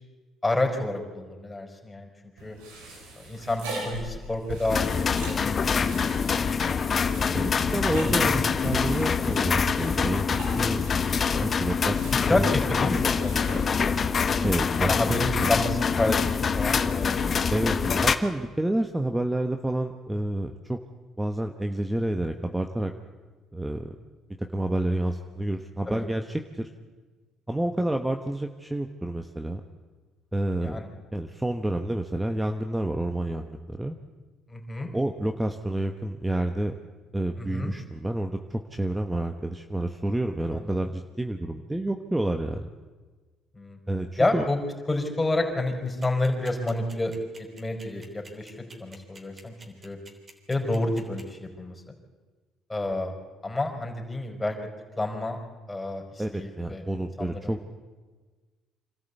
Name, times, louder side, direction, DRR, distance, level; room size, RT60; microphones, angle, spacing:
voice 1, 0.4-2.1 2.4-2.6 3.2-4.9 5.2-7.3 8.0-8.4 9.2-9.3 12.0-13.8 14.8-17.8 25.9-26.0 30.6-30.9 34.5-34.9 37.4-37.7 40.5-40.8 43.5-43.8 44.2-44.6 44.9-49.5 49.8-50.0 50.5-51.8 52.7-53.1 53.4-54.5 55.0-55.4 55.7-56.8 57.2-57.6, left 2 dB, 20° left, 2 dB, 4.9 m, -29 dB
sound 1, 2.4-14.5, right 2 dB, 85° right, 4.8 m, -41 dB
sound 2, 4.7-18.2, left 6 dB, 45° left, 1.0 m, -25 dB
voice 2, 7.3-10.8 11.4-12.5 14.4-14.9 15.4-15.5 17.5-20.8 21.2-22.9 23.5-23.9 24.5-26.7 27.5-29.6 30.3-30.8 31.1-34.0 34.9-36.7 37.1-42.7 43.9-44.1 44.3-44.4 56.2-57.6, right 1 dB, 10° right, 6 dB, 1.2 m, -29 dB
sound 3, 46.0-51.2, right 3 dB, 35° right, 3.5 m, -48 dB
26.0 x 13.5 x 8.3 m, 1.4 s
hypercardioid pair, 60°, 0 cm